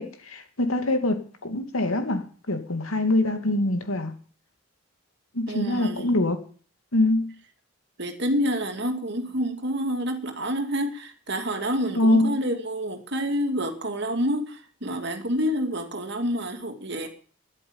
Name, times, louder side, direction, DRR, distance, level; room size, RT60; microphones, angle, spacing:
voice 1, 0.0-4.1 5.3-6.4 6.9-7.3 11.9-12.4, left 1 dB, 80° left, 2.6 m, -24 dB
voice 2, 5.5-6.1 8.0-17.1, equal, 50° right, 2.6 m, -28 dB
13.0 x 11.0 x 8.9 m
head